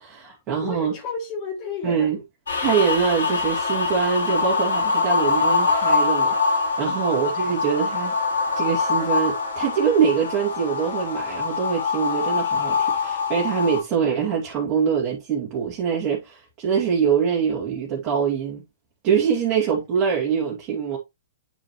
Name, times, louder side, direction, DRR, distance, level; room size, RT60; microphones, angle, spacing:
voice 1, 0.0-0.9 1.8-2.2 2.6-8.1 8.6-18.6 19.0-21.0, right 7 dB, 30° right, 2.5 m, -24 dB
voice 2, 0.6-2.1 6.8-7.0, left 4 dB, 40° left, 2.6 m, -32 dB
sound 1, 2.5-13.8, left 4 dB, 85° left, 4.9 m, -24 dB
8.9 x 5.0 x 3.1 m
hypercardioid pair, 125°, 0 cm